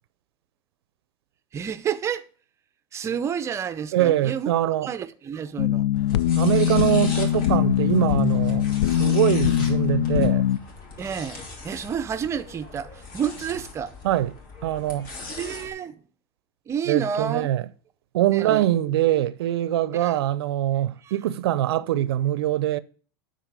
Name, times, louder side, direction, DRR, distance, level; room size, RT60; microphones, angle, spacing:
voice 1, 1.5-2.2 2.9-4.5 4.8-5.9 11.0-13.9 15.3-16.0 16.7-17.5 18.3-18.7 19.9-20.2 21.0-21.1, right 7 dB, 20° right, 0.6 m, -30 dB
voice 2, 3.9-4.9 6.4-8.7 9.0-10.4 14.0-14.3 14.6-15.1 16.9-17.6 18.1-22.8, right 13 dB, 80° right, 0.6 m, -23 dB
sound 1, 5.6-10.6, left 11 dB, 85° left, 0.4 m, -22 dB
sound 2, 5.9-15.7, left 3 dB, 55° left, 2.9 m, -40 dB
9.2 x 4.1 x 6.8 m
supercardioid pair, 135°, 13 cm